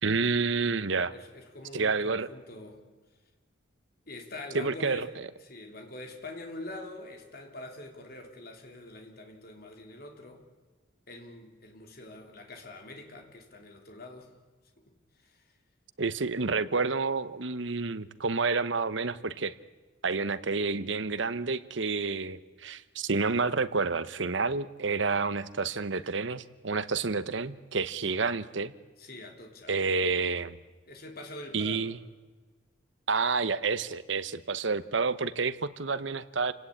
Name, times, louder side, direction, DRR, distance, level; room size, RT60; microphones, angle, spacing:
voice 1, 0.0-1.1 1.7-2.3 4.5-5.1 16.0-19.6 20.0-28.7 29.7-30.6 31.5-32.0 33.1-36.5, right 4 dB, 70° right, 14 dB, 1.0 m, -29 dB
voice 2, 1.1-2.8 4.1-5.1 5.4-10.4 11.1-14.3 14.8-15.5 29.0-29.7 30.9-31.9, left 2 dB, 50° left, 3 dB, 3.3 m, -45 dB
28.5 x 18.0 x 8.8 m, 1.3 s
head